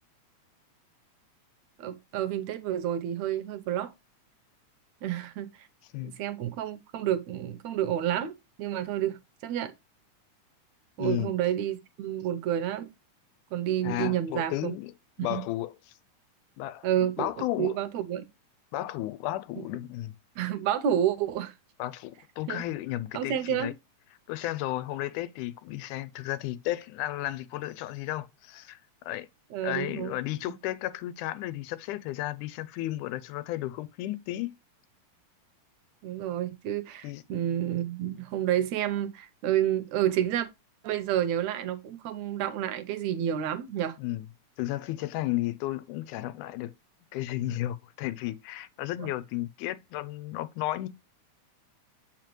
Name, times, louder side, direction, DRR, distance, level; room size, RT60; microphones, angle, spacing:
voice 1, 1.8-3.9 5.0-5.7 6.0-9.7 11.0-12.9 13.5-14.7 15.2-15.4 16.8-17.3 17.6-18.3 20.4-21.5 22.5-22.6 23.1-23.7 29.5-30.2 36.0-40.5 40.8-44.0 49.0-49.1, right 11 dB, 75° right, 1.8 m, -29 dB
voice 2, 11.0-11.3 13.8-14.9 15.2-15.7 16.6-16.9 17.2-17.8 18.7-20.1 21.8-23.7 24.3-28.8 29.1-29.3 29.6-34.5 37.0-37.2 44.0-44.3 44.6-46.7 47.1-50.9, left 15 dB, 85° left, 2.1 m, -33 dB
7.5 x 5.1 x 3.0 m
omnidirectional pair, 3.5 m